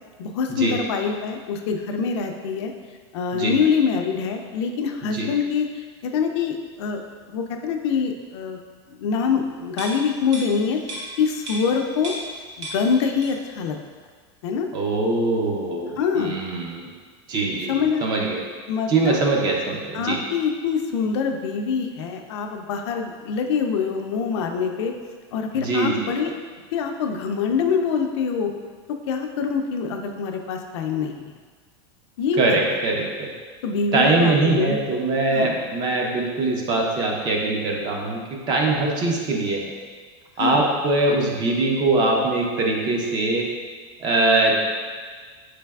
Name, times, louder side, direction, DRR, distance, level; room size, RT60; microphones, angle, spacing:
voice 1, 0.2-2.7 3.1-7.0 7.3-8.6 8.9-12.1 12.6-13.8 14.4-14.7 16.0-16.3 17.7-18.1 18.7-19.2 19.9-25.0 25.3-26.3 26.7-28.5 28.9-31.3 32.2-33.1 33.6-34.8 35.3-35.5 40.4-40.6, left 6 dB, 70° left, 4 dB, 0.4 m, -25 dB
sound 1, 9.7-12.4 12.6-13.6 13.9-14.0, right 1 dB, 90° right, 0.9 m, -35 dB
voice 2, 14.7-16.9 17.3-18.4 18.9-20.2 25.5-26.1 32.4-33.3 33.9-39.7 40.4-43.5 44.0-44.5, right 2 dB, 30° right, 0 dB, 0.5 m, -22 dB
4.0 x 3.2 x 2.3 m, 1.6 s
supercardioid pair, 155°, 15 cm